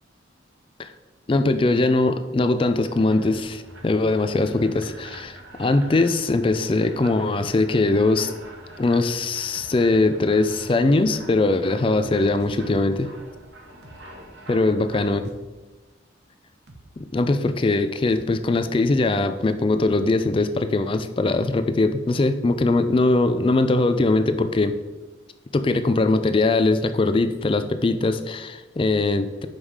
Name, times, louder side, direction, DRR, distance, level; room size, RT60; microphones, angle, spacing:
voice 1, 1.3-8.3 8.8-13.1 14.5-15.2 17.0-24.8 25.5-29.5, left 2 dB, 25° left, 10 dB, 0.3 m, -21 dB
sound 1, 2.8-15.1, right 1 dB, 75° right, 1.4 m, -44 dB
sound 2, 9.6-9.7 11.0-11.2 12.4-12.6 13.8-14.0 15.2-15.4 16.7-16.9 18.1-18.3, right 2 dB, 55° right, 0.8 m, -47 dB
5.5 x 5.2 x 4.8 m, 1.1 s
head